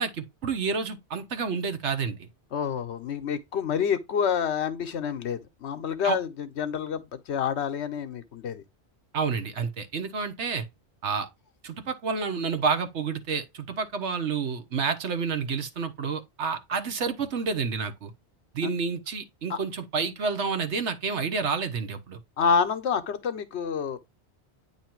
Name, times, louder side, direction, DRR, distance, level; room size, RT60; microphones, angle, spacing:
voice 1, 0.0-2.3 6.0-6.2 9.1-10.7 11.0-11.3 11.6-18.1 18.5-22.2, right 5 dB, 85° right, 1.4 m, -29 dB
voice 2, 2.5-8.6 18.6-18.7 19.5-19.6 22.4-24.0, left 7 dB, 80° left, 1.1 m, -28 dB
9.0 x 3.1 x 4.4 m
omnidirectional pair, 1.1 m